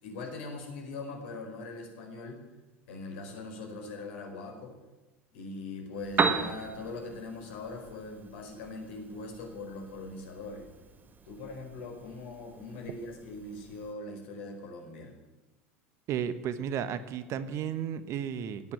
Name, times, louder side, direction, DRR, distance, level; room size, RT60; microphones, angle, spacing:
voice 1, 0.0-2.5 2.9-4.8 5.3-10.7 11.2-15.1, left 3 dB, 65° left, 3 dB, 4.7 m, -41 dB
Piano, 5.9-13.9, right 5 dB, 25° right, 1.7 m, -37 dB
voice 2, 16.1-18.7, right 8 dB, 45° right, 13 dB, 1.2 m, -33 dB
18.0 x 9.0 x 8.8 m, 1.1 s
figure-of-eight pair, 75°, 7 cm